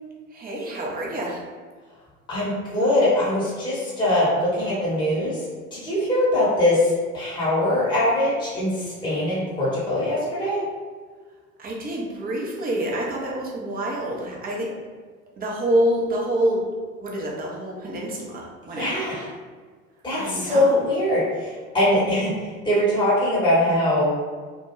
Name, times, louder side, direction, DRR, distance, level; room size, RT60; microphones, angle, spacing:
voice 1, 0.3-1.5 11.6-14.7 15.4-16.7 17.0-19.0 20.1-20.9, right 1 dB, 20° right, -2 dB, 0.6 m, -27 dB
voice 2, 2.3-5.4 5.7-10.6 18.7-19.2 20.0-24.2, left 1 dB, 10° left, -8 dB, 1.0 m, -22 dB
2.2 x 2.2 x 3.1 m, 1.5 s
figure-of-eight pair, 65°, 42 cm